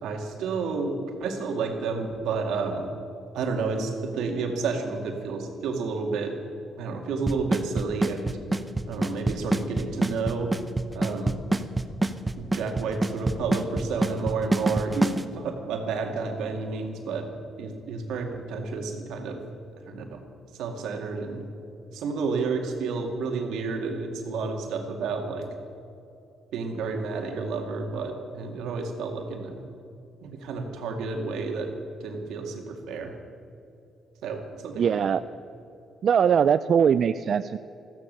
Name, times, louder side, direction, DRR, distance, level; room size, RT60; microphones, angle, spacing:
voice 1, 0.0-2.9 3.3-6.3 6.8-8.4 8.9-10.5 10.9-11.4 12.4-17.3 17.6-19.4 19.9-20.2 20.6-21.4 21.9-25.5 26.5-29.6 30.2-31.7 32.0-33.1 34.2-35.2, right 4 dB, 85° right, 3 dB, 2.2 m, -30 dB
Drum kit / Snare drum / Bass drum, 7.3-15.2, right 2 dB, 15° right, 0.8 m, -25 dB
voice 2, 34.8-35.2 36.0-37.6, right 7 dB, 55° right, 13 dB, 0.3 m, -21 dB
14.5 x 14.0 x 6.8 m, 2.6 s
cardioid pair, 90°, 0 cm